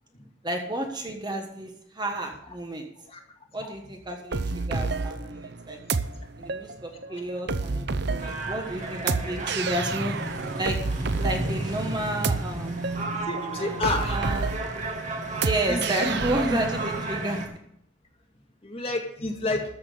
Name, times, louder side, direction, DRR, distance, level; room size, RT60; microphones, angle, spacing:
voice 1, 0.4-2.9 3.5-5.8 6.4-10.1 10.6-10.8 11.1-12.8 13.5-14.5 15.4-17.5, right 1 dB, 20° right, 3 dB, 1.3 m, -31 dB
sound 1, 4.3-17.0, right 4 dB, 60° right, 0.7 m, -30 dB
sound 2, 8.2-17.5, right 2 dB, 40° right, 2.2 m, -33 dB
voice 2, 13.0-14.2 15.7-16.1 16.5-16.6 18.6-19.6, left 2 dB, 30° left, 1 dB, 2.3 m, -30 dB
14.0 x 6.2 x 7.9 m, 0.73 s
head